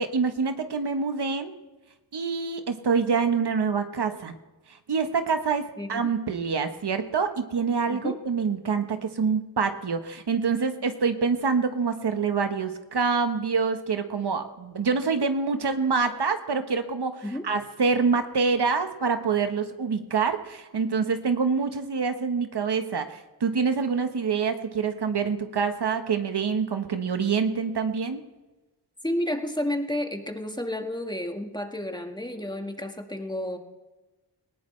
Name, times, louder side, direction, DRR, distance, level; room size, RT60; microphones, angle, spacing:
voice 1, 0.0-1.6 2.1-4.3 4.9-28.2, right 5 dB, 75° right, 7 dB, 1.3 m, -26 dB
voice 2, 5.8-6.1 7.9-8.2 17.2-17.4 29.0-33.6, left 1 dB, 10° left, 4 dB, 1.6 m, -31 dB
19.0 x 18.5 x 3.3 m, 1.1 s
wide cardioid pair, 85°, 40 cm